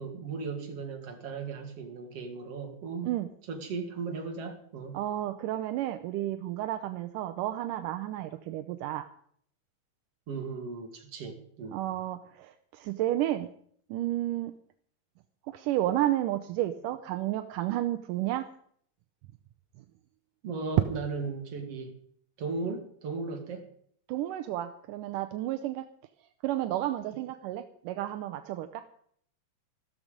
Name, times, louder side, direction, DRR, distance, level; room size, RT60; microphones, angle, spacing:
voice 1, 0.0-3.1 3.5-5.0 10.3-11.8 20.4-22.0 22.4-23.7, right 4 dB, 50° right, 4 dB, 3.1 m, -36 dB
voice 2, 4.9-9.1 11.7-13.5 13.9-14.6 15.4-18.5 19.8-19.9 24.1-25.8 26.2-28.8, right 13 dB, 80° right, 8 dB, 2.3 m, -32 dB
15.0 x 13.5 x 5.2 m, 0.62 s
omnidirectional pair, 3.9 m